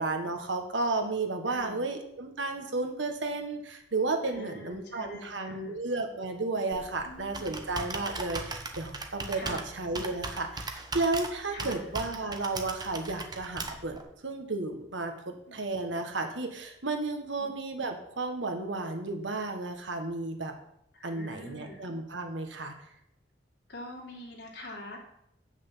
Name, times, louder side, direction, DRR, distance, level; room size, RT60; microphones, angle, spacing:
voice 1, 0.0-15.1 15.5-20.5 21.0-22.7, right 3 dB, 80° right, 5 dB, 1.5 m, -33 dB
voice 2, 1.5-1.9 4.3-5.7 7.0-7.6 9.3-9.7 11.5-11.9 15.5-15.6 17.4-17.5 20.9-21.8 23.7-25.0, left 1 dB, 65° left, -2 dB, 3.0 m, -44 dB
Computer keyboard, 6.7-14.0, right 3 dB, 20° right, 1.0 m, -39 dB
7.7 x 6.4 x 7.5 m, 0.77 s
head